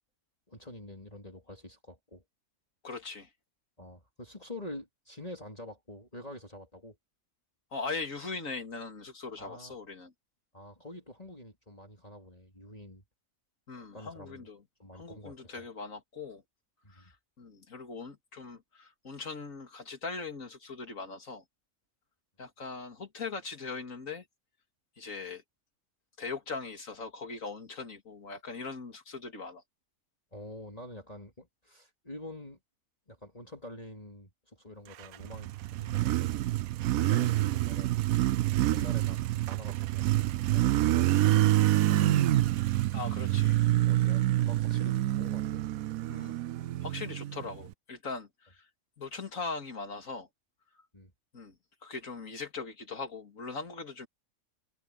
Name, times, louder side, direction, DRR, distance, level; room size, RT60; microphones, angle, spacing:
voice 1, 0.5-2.2 3.8-7.0 9.4-9.8 10.5-13.0 13.8-14.5 14.8-15.7 16.8-17.1 30.3-32.6 33.1-36.5 37.0-37.9 38.7-42.1 43.9-45.6 50.9-51.1, left 1 dB, 25° left, 3.9 m, -47 dB
voice 2, 2.8-3.3 7.7-10.1 13.7-14.6 14.9-16.4 16.9-21.4 22.4-24.2 25.0-25.4 26.2-29.6 36.9-37.4 42.9-43.6 46.1-46.4 46.8-48.7 49.0-50.3 51.3-51.5 51.8-54.1, left 4 dB, 70° left, 2.9 m, -40 dB
Motorcycle, 35.0-47.7, right 14 dB, 85° right, 1.1 m, -27 dB
omnidirectional pair, 1.4 m